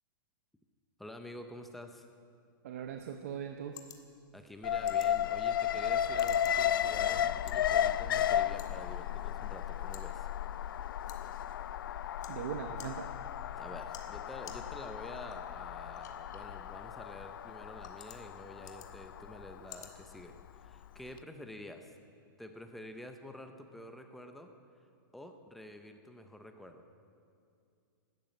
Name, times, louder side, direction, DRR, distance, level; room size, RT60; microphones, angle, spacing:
voice 1, 1.0-2.1 4.3-10.3 13.5-20.4 20.6-21.9 22.4-24.5 25.1-26.8, left 1 dB, ahead, 6 dB, 0.5 m, -48 dB
voice 2, 2.6-3.8 12.3-13.1, right 8 dB, 40° right, 6 dB, 0.7 m, -40 dB
sound 1, 2.8-20.8, left 8 dB, 55° left, 1.7 m, -57 dB
Alarm, 4.6-20.7 21.1-21.2, left 10 dB, 75° left, 0.4 m, -34 dB
13.0 x 12.5 x 8.8 m, 2.4 s
supercardioid pair, 180°, 12 cm